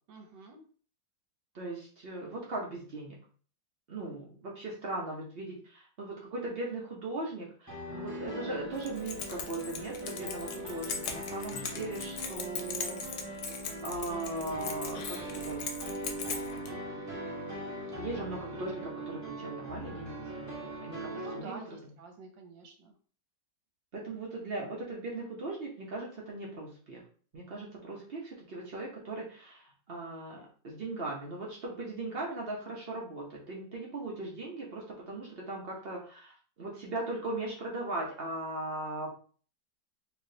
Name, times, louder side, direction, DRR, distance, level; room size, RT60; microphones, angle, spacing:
voice 1, 0.1-0.6 21.2-22.9, right 4 dB, 80° right, 3 dB, 1.4 m, -48 dB
voice 2, 1.5-3.2 3.9-13.3 13.8-15.7 18.0-21.9 23.9-27.0 27.3-39.1, right 2 dB, 50° right, -2 dB, 0.7 m, -39 dB
sound 1, 7.7-21.4, right 1 dB, 20° right, 0.5 m, -40 dB
Keys jangling, 8.8-16.7, left 6 dB, 75° left, 1.2 m, -40 dB
3.3 x 2.9 x 2.7 m, 0.43 s
omnidirectional pair, 2.0 m